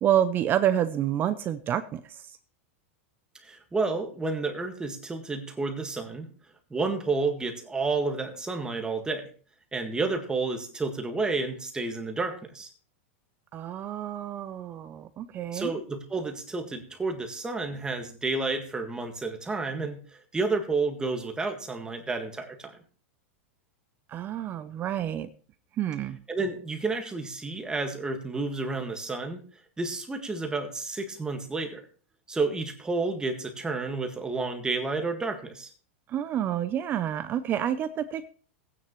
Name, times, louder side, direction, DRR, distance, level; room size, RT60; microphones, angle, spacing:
voice 1, 0.0-2.2 13.5-15.7 24.1-25.3 25.8-26.2 36.1-38.3, right 10 dB, 30° right, 12 dB, 0.6 m, -28 dB
voice 2, 3.4-6.3 6.7-9.3 9.7-12.7 15.5-22.8 26.3-29.4 29.8-31.8 32.3-35.7, right 3 dB, 10° right, 5 dB, 1.7 m, -30 dB
16.0 x 9.6 x 3.1 m, 0.41 s
supercardioid pair, 130°, 7 cm